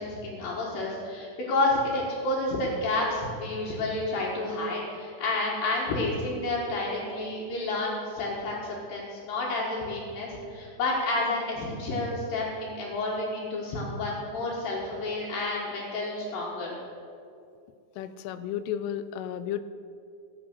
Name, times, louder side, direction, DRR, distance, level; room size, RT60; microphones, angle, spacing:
voice 1, 0.0-16.8, left 2 dB, 60° left, -7 dB, 2.9 m, -30 dB
voice 2, 18.0-19.6, left 10 dB, 85° left, 12 dB, 3.1 m, -33 dB
15.5 x 7.7 x 6.3 m, 2.5 s
omnidirectional pair, 5.7 m